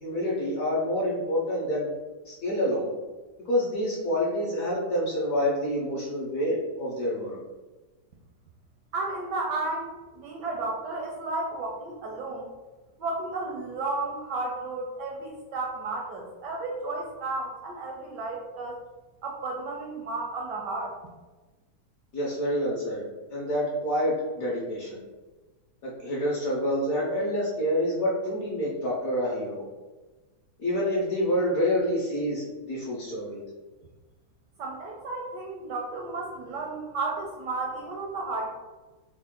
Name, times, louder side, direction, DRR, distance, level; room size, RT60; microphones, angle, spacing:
voice 1, 0.0-1.9 2.3-2.9 3.5-7.4 22.1-23.0 23.3-25.0 25.8-29.6 30.6-33.4, equal, 60° left, -5 dB, 1.0 m, -27 dB
voice 2, 8.9-12.5 13.0-18.8 19.2-21.0 34.6-38.5, right 3 dB, 75° right, -1 dB, 1.0 m, -33 dB
3.5 x 2.4 x 3.6 m, 1.2 s
omnidirectional pair, 2.2 m